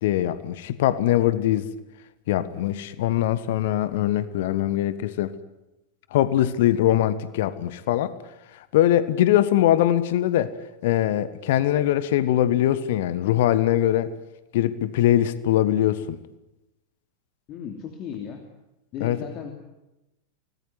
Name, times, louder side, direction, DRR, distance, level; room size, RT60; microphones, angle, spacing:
voice 1, 0.0-1.7 2.3-5.3 6.1-8.2 8.5-10.5 10.8-14.1 14.5-16.2 19.0-19.2, left 12 dB, 55° left, 15 dB, 1.3 m, -22 dB
voice 2, 17.5-18.4 18.9-19.5, left 7 dB, 35° left, 5 dB, 2.9 m, -35 dB
25.0 x 19.0 x 9.6 m, 0.95 s
figure-of-eight pair, 90°, 0 cm